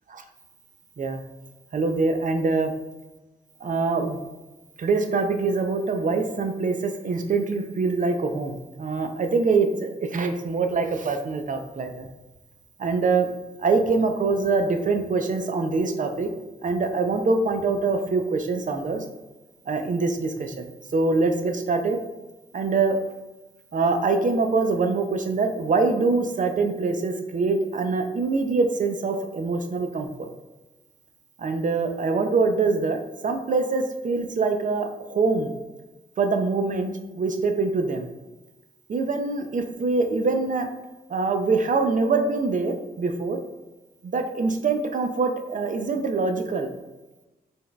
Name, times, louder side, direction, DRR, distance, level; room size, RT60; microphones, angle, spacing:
voice 1, 1.7-2.7 3.6-4.2 4.8-12.1 12.8-13.3 13.6-16.3 16.6-19.0 19.7-22.0 22.5-23.0 23.7-30.3 31.4-33.0 33.2-35.5 36.2-36.9 37.2-38.1 38.9-40.7 41.1-43.4 44.0-46.7, right 4 dB, 45° right, 5 dB, 0.5 m, -24 dB
4.2 x 3.4 x 2.2 m, 1.1 s
cardioid pair, 90°, 18 cm